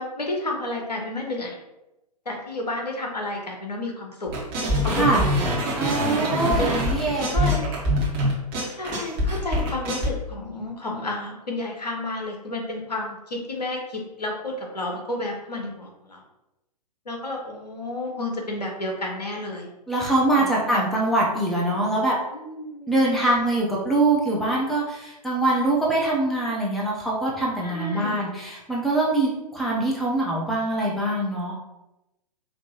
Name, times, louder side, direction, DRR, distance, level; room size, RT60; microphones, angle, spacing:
voice 1, 0.0-1.6 2.2-4.3 4.8-5.1 6.2-6.8 7.2-7.7 8.7-16.2 17.0-19.7 20.4-20.8 22.3-23.0 27.6-28.2, left 2 dB, 75° left, 1 dB, 1.1 m, -31 dB
sound 1, 4.3-10.1, equal, 35° right, 1.4 m, -24 dB
voice 2, 5.8-7.3 19.9-22.1 22.9-31.5, right 2 dB, ahead, -4 dB, 0.6 m, -23 dB
5.1 x 2.9 x 2.8 m, 0.94 s
figure-of-eight pair, 115°, 21 cm